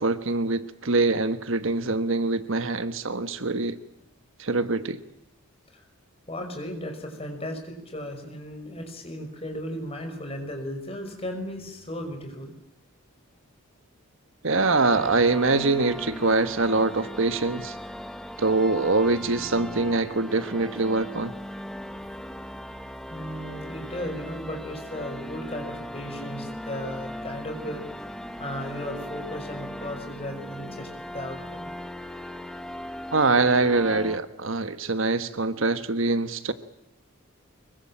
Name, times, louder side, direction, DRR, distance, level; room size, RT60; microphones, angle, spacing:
voice 1, 0.0-3.8 4.4-5.0 14.4-17.8 18.4-21.3 33.1-36.5, right 3 dB, 60° right, 11 dB, 1.3 m, -24 dB
voice 2, 6.3-12.5 23.1-27.9 28.4-31.7, left 1 dB, 25° left, 4 dB, 5.7 m, -36 dB
sound 1, 14.6-34.2, equal, ahead, 0.9 m, -38 dB
25.0 x 23.0 x 8.8 m, 0.78 s
head